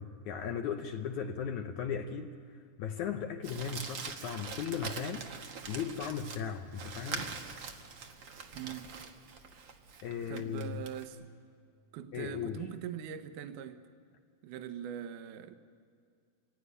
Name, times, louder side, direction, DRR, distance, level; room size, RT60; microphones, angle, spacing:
voice 1, 0.0-2.4 2.8-5.3 5.7-7.3 10.0-10.9 12.1-12.7, left 7 dB, 70° left, 1.9 m, -37 dB
Crumpling crinkling, 3.4-11.0, right 5 dB, 85° right, 1.0 m, -43 dB
voice 2, 8.6-8.9 10.3-11.3 11.9-13.8 14.4-15.5, right 9 dB, 70° right, 2.3 m, -42 dB
24.5 x 17.0 x 9.7 m
omnidirectional pair, 4.2 m